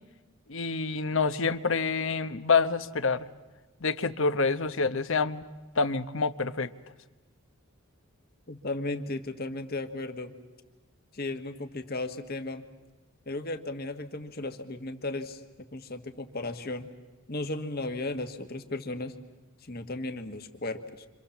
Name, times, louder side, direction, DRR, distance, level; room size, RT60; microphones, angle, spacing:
voice 1, 0.5-3.3 3.8-5.4 5.8-6.7, left 4 dB, 60° left, 12 dB, 1.0 m, -27 dB
voice 2, 8.5-10.3 11.1-12.6 13.2-15.4 15.7-16.9 17.3-19.1 19.6-21.1, left 2 dB, 45° left, 7 dB, 1.7 m, -35 dB
28.0 x 26.0 x 7.2 m, 1.2 s
head